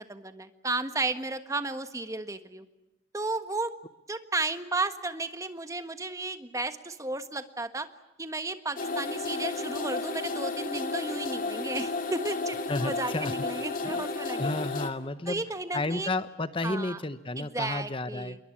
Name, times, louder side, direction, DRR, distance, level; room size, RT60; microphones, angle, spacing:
voice 1, 0.0-2.6 3.1-3.7 4.1-7.9 8.2-14.7 15.3-16.1 16.6-17.0 17.4-18.4, right 2 dB, 15° right, 9 dB, 1.5 m, -33 dB
sound 1, 8.8-14.9, left 3 dB, 50° left, 2.4 m, -32 dB
voice 2, 12.7-13.3 13.8-14.1 14.4-15.4 15.7-18.4, left 2 dB, 30° left, 12 dB, 0.9 m, -32 dB
28.0 x 22.5 x 8.6 m, 0.98 s
head